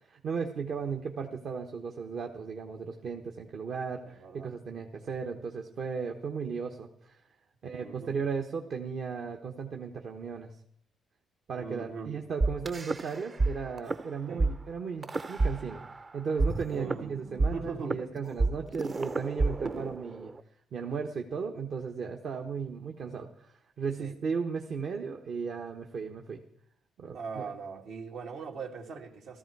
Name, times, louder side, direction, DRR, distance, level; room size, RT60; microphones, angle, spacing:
voice 1, 0.0-7.2 7.6-10.5 11.5-20.3 20.7-26.4 27.0-27.4, right 5 dB, 60° right, 1.1 m, -36 dB
voice 2, 4.1-4.5 7.8-8.1 11.6-12.1 14.3-14.4 16.7-18.0 24.0-24.2 27.1-29.4, right 5 dB, 80° right, 2.3 m, -40 dB
sound 1, 12.4-13.5 13.8-14.0 14.4-14.5 15.0-16.0 16.4-20.4, right 3 dB, 35° right, 0.7 m, -29 dB
15.0 x 14.0 x 4.7 m
cardioid pair, 90°, 0 cm